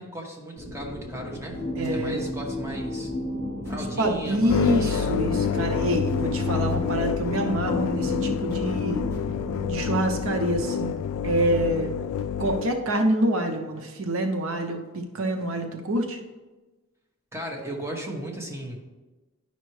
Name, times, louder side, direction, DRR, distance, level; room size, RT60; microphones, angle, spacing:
voice 1, 0.0-1.6 1.9-3.1 3.6-5.2 17.3-18.8, right 1 dB, 15° right, -1 dB, 1.1 m, -36 dB
sound 1, 0.6-9.7, equal, 90° right, 2.3 m, -39 dB
sound 2, 1.5-10.6, left 1 dB, 15° left, 1.6 m, -34 dB
voice 2, 1.8-2.2 4.0-9.0 9.7-11.0 11.2-11.9 12.4-16.2, right 1 dB, 70° right, 4 dB, 0.7 m, -26 dB
sound 3, 4.5-12.7, left 7 dB, 80° left, 0.3 m, -28 dB
10.0 x 5.6 x 3.2 m, 1.2 s
head